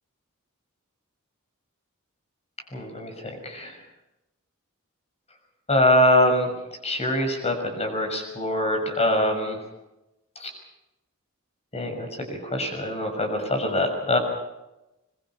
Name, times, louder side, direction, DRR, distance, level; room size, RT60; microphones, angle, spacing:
voice 1, 2.7-3.7 5.7-6.5 6.8-9.6 10.4-10.5 11.7-12.1 12.4-14.2, left 1 dB, 30° left, 5 dB, 6.4 m, -23 dB
25.5 x 22.0 x 5.7 m, 0.95 s
head